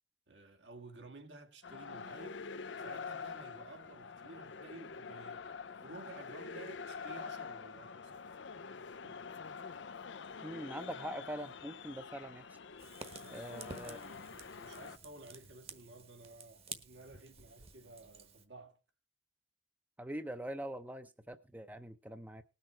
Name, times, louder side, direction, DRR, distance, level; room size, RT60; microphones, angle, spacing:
voice 1, 0.3-2.4 2.8-8.1 9.0-9.2 13.1-13.5 13.8-18.8, right 2 dB, 75° right, 2.0 m, -53 dB
sound 1, 1.6-15.0, left 5 dB, 85° left, 0.7 m, -46 dB
voice 2, 10.4-12.6 13.3-14.0 20.0-22.4, right 1 dB, 10° right, 0.6 m, -43 dB
Fire, 12.8-18.5, right 5 dB, 30° right, 1.2 m, -52 dB
19.5 x 6.6 x 4.4 m
head